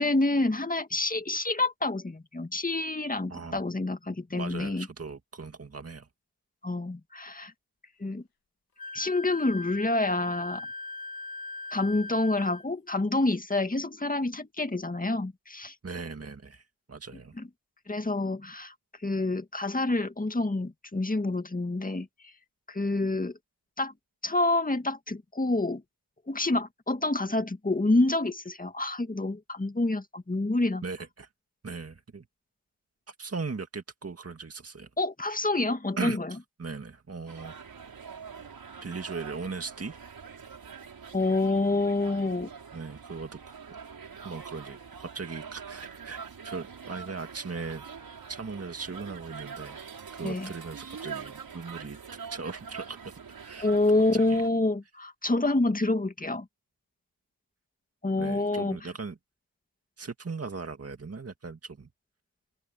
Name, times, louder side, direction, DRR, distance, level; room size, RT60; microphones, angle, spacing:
voice 1, 0.0-4.9 6.6-7.5 8.0-8.2 8.9-10.7 11.7-15.7 17.4-17.5 17.9-18.7 19.0-22.1 22.7-23.3 23.8-23.9 24.2-25.8 26.3-30.8 35.0-36.3 41.1-42.5 50.2-50.5 53.6-56.5 58.0-58.8, left 2 dB, 25° left, 2.1 m, -27 dB
voice 2, 3.3-3.6 4.4-6.1 15.8-17.3 30.8-31.3 31.6-32.2 33.1-34.9 36.0-37.5 38.8-40.0 40.7-40.8 42.7-43.4 44.2-47.9 48.3-49.9 50.1-52.0 52.3-53.7 54.1-54.4 58.2-59.2 60.0-61.9, right 4 dB, 40° right, 2.1 m, -38 dB
Wind instrument woodwind instrument, 8.8-12.6, left 3 dB, 80° left, 1.8 m, -39 dB
sound 1, 37.3-54.5, right 6 dB, 80° right, 6.3 m, -44 dB
open air
cardioid pair, 45°, 35 cm